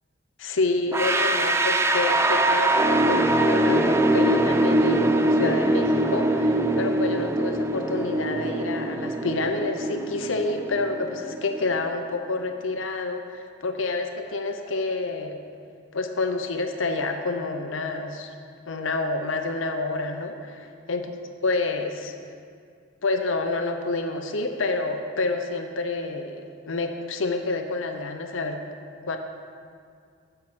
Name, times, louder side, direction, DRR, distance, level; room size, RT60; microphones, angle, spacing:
voice 1, 0.4-15.4 15.9-18.3 18.7-21.1 21.4-22.2 23.0-28.6 29.0-29.2, left 3 dB, 75° left, 5 dB, 0.7 m, -28 dB
sound 1, 0.9-11.8, right 1 dB, 15° right, 0.4 m, -23 dB
8.8 x 5.9 x 7.7 m, 2.2 s
head